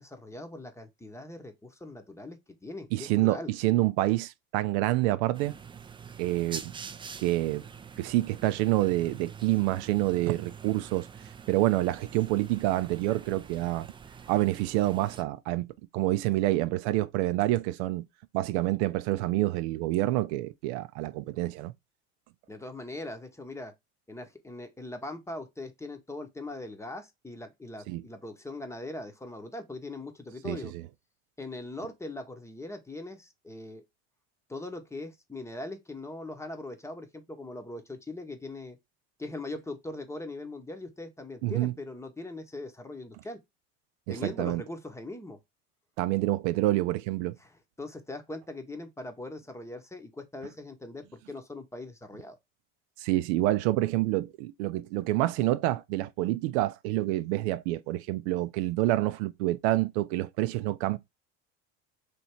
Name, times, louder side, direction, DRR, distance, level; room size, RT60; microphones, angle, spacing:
voice 1, 0.0-3.5 22.5-23.7 24.1-30.7 31.4-33.8 34.5-38.8 39.2-43.4 44.1-45.4 47.4-52.4, left 2 dB, 10° left, 0.8 m, -41 dB
voice 2, 2.9-5.6 6.2-6.7 7.2-7.6 8.0-11.1 11.5-13.9 14.3-15.7 15.9-18.0 18.3-21.7 27.9-28.0 30.4-30.8 41.4-41.7 44.1-44.6 46.0-47.4 53.0-61.0, right 17 dB, 75° right, 0.5 m, -27 dB
sound 1, 5.3-15.2, right 6 dB, 15° right, 0.4 m, -45 dB
3.3 x 2.8 x 4.2 m
supercardioid pair, 100°, 34 cm